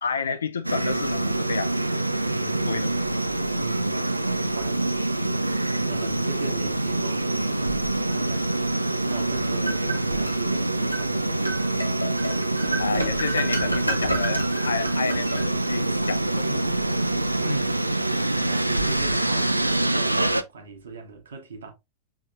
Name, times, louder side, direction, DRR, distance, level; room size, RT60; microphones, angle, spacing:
voice 1, 0.0-1.8 2.7-2.9 12.8-16.6 17.5-17.6, left 5 dB, 70° left, 0.4 m, -30 dB
sound 1, 0.6-20.4, right 2 dB, 85° right, 0.3 m, -25 dB
voice 2, 2.2-3.1 3.6-5.0 5.8-11.5 16.4-16.8 17.4-17.9 18.4-21.7, right 4 dB, 65° right, 1.3 m, -39 dB
sound 2, 9.1-10.4 10.9-11.1 11.4-15.9, right 1 dB, 90° left, 0.9 m, -31 dB
5.7 x 3.4 x 2.4 m
figure-of-eight pair, 90°, 0 cm